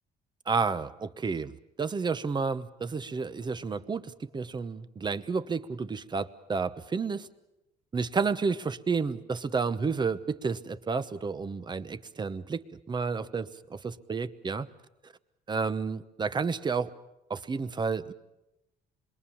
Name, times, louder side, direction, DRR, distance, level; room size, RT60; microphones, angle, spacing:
voice 1, 0.5-1.5 1.8-7.3 7.9-14.7 15.5-16.9 17.3-18.1, right 5 dB, 25° right, 12 dB, 1.0 m, -31 dB
27.0 x 22.0 x 7.2 m, 0.93 s
cardioid pair, 110°, 17 cm